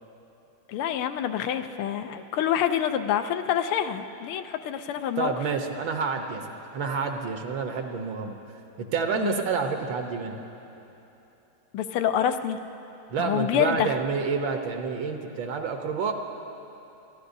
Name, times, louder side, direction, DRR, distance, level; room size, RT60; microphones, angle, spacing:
voice 1, 0.7-5.3 9.1-9.4 11.7-12.6 13.2-13.9, left 9 dB, 85° left, 8 dB, 1.5 m, -27 dB
voice 2, 5.2-6.4 6.7-8.3 8.8-10.4 13.1-16.1, right 5 dB, 70° right, 4 dB, 1.6 m, -28 dB
29.0 x 13.5 x 2.7 m, 3.0 s
omnidirectional pair, 2.3 m